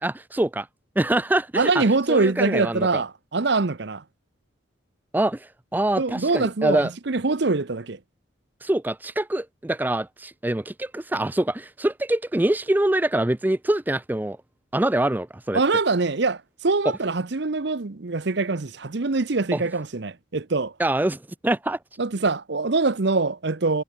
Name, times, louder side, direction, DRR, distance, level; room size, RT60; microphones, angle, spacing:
voice 1, 0.0-0.7 1.0-3.0 5.1-6.9 8.6-14.4 14.7-15.6 19.5-19.6 20.8-21.8, right 1 dB, 10° right, 0.4 m, -24 dB
voice 2, 1.6-4.0 6.0-6.8 7.1-8.0 15.5-20.7 22.0-23.8, right 3 dB, 55° right, 0.8 m, -23 dB
head